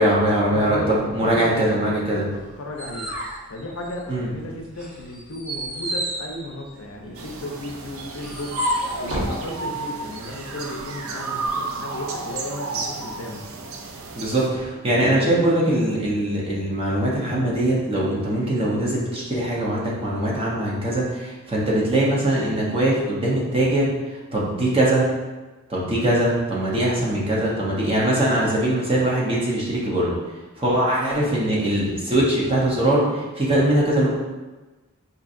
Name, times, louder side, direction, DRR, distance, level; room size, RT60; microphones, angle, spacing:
voice 1, 0.0-2.3 4.1-4.3 14.2-23.9 24.3-25.1 25.7-30.1 30.6-34.1, right 1 dB, 25° right, -5 dB, 0.8 m, -21 dB
voice 2, 0.5-0.9 1.2-2.3 2.6-3.1 3.5-13.4 14.8-15.4 31.0-31.3, left 1 dB, 65° left, 1 dB, 0.5 m, -34 dB
sound 1, 2.3-4.3 4.7-9.4, equal, 90° right, 1.2 m, -31 dB
sound 2, 7.1-14.5, right 3 dB, 70° right, 0.4 m, -33 dB
4.5 x 2.7 x 2.5 m, 1.2 s
head